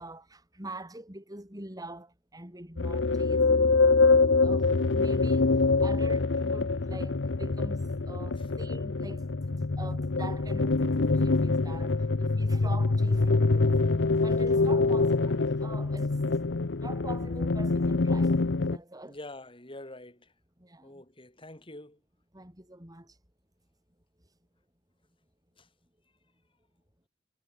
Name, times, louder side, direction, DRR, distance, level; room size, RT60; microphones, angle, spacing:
voice 1, 0.0-3.5 4.4-13.7 14.2-16.2 16.8-19.2 20.6-21.0 22.3-23.2, right 2 dB, 20° right, 5.7 m, -44 dB
sound 1, 2.8-18.8, left 3 dB, 80° left, 0.8 m, -25 dB
voice 2, 19.1-20.3 20.8-22.0 25.6-25.7, left 1 dB, 30° left, 5.2 m, -46 dB
head